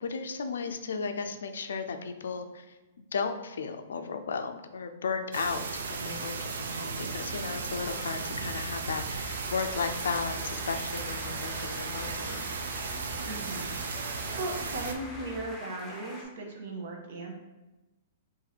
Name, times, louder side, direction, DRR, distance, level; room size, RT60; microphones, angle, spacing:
voice 1, 0.0-2.8 3.1-12.4, left 5 dB, 85° left, 7 dB, 0.4 m, -35 dB
sound 1, 5.3-14.9, right 4 dB, 80° right, 0.4 m, -35 dB
sound 2, 8.1-15.5, equal, 35° right, 1.2 m, -48 dB
sound 3, 8.8-16.2, left 2 dB, 10° left, 0.7 m, -46 dB
voice 2, 13.2-13.7 14.1-17.3, right 2 dB, 65° right, 0 dB, 0.8 m, -37 dB
2.8 x 2.6 x 4.0 m, 1.0 s
hypercardioid pair, 140°, 0 cm